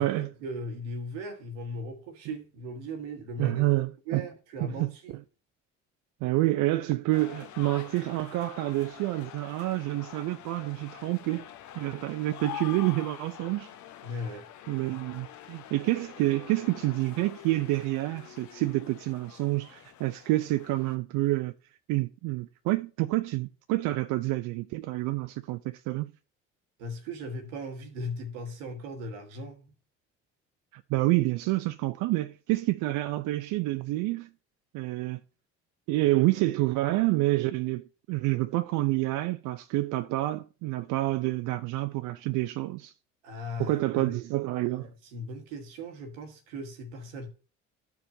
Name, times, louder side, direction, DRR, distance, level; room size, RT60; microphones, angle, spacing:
voice 1, 0.0-5.2 14.0-14.5 26.8-29.7 43.2-44.2 44.8-47.3, equal, 80° right, 1.3 m, -38 dB
voice 2, 3.4-4.3 4.6-4.9 6.2-11.4 11.8-13.7 14.7-21.5 21.9-26.1 30.7-34.3 34.7-35.2 35.9-42.9 43.6-44.9, right 18 dB, 60° right, 0.5 m, -28 dB
sound 1, 7.1-21.0, left 11 dB, 55° left, 0.8 m, -46 dB
13.0 x 4.6 x 2.7 m
hypercardioid pair, 55°, 36 cm